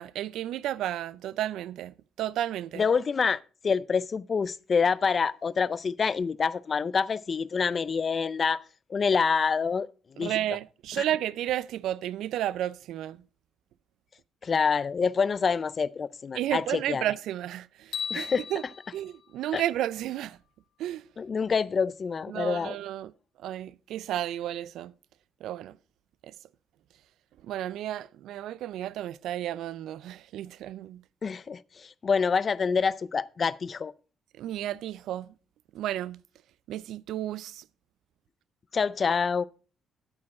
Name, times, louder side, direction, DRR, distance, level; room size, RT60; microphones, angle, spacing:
voice 1, 0.0-2.8 10.2-13.2 16.3-18.6 18.9-20.4 20.8-21.0 22.3-23.1 23.4-24.9 25.4-25.8 27.4-31.0 34.4-35.3 35.7-36.2 36.7-37.6, right 12 dB, 85° right, 0.3 m, -32 dB
voice 2, 2.8-3.4 3.6-8.6 8.9-9.9 10.1-10.3 14.4-17.0 18.1-18.4 19.5-19.6 21.2-22.8 31.2-33.9 38.7-39.4, left 5 dB, 40° left, 0.4 m, -26 dB
sound 1, 17.9-20.2, left 7 dB, 75° left, 2.0 m, -38 dB
8.7 x 8.6 x 4.2 m
cardioid pair, 90°, 0 cm